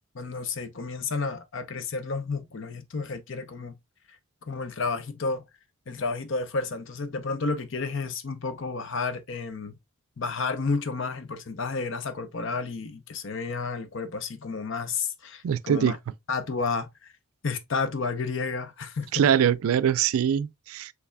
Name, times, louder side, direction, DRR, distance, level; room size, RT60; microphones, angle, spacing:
voice 1, 0.1-3.8 4.4-5.4 5.9-9.7 10.2-16.0 16.3-16.9 17.4-19.2, left 4 dB, 55° left, 0.6 m, -31 dB
voice 2, 15.4-16.0 19.1-20.9, right 8 dB, 70° right, 0.3 m, -23 dB
5.6 x 3.3 x 2.2 m
head